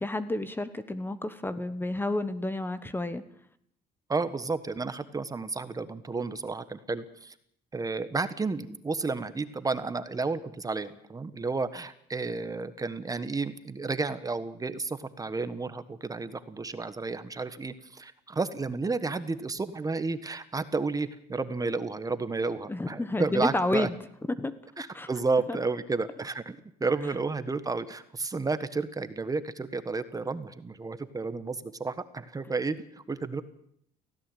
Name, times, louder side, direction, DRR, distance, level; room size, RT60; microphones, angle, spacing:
voice 1, 0.0-3.2 22.7-23.9 24.4-24.5 24.9-25.1 25.5-25.6, left 2 dB, 10° left, 13 dB, 1.3 m, -30 dB
voice 2, 4.1-7.3 7.7-23.9 24.8-33.4, right 3 dB, 20° right, 12 dB, 1.4 m, -32 dB
18.0 x 16.5 x 9.2 m, 0.68 s
cardioid pair, 110°, 17 cm